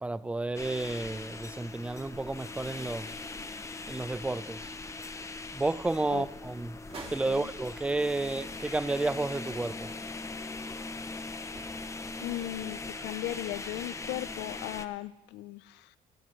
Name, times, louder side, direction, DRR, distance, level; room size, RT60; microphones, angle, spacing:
voice 1, 0.0-3.1 3.9-4.7 5.5-6.8 7.1-9.9, right 2 dB, 5° right, 0.4 m, -31 dB
sound 1, 0.5-14.9, left 3 dB, 15° left, 0.7 m, -41 dB
sound 2, 6.8-9.0 9.2-9.3 11.5-12.5, right 3 dB, 35° right, 2.3 m, -49 dB
voice 2, 12.2-16.0, left 17 dB, 85° left, 0.5 m, -37 dB
18.0 x 9.7 x 3.1 m
cardioid pair, 110°, 17 cm